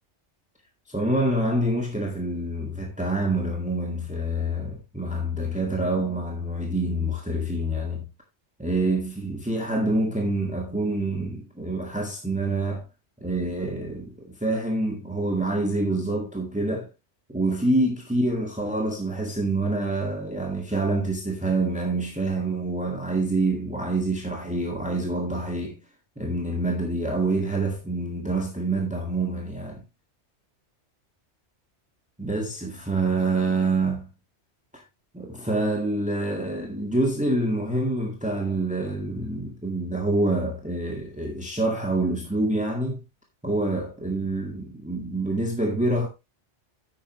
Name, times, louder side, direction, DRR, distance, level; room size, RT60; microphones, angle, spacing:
voice 1, 0.9-8.1 8.6-12.8 13.2-16.9 17.3-25.8 26.2-29.8 32.2-34.1 34.7-34.8 35.1-43.0 43.4-46.1, right 2 dB, 5° right, 1.9 m, -26 dB
10.5 x 8.7 x 3.0 m
omnidirectional pair, 1.2 m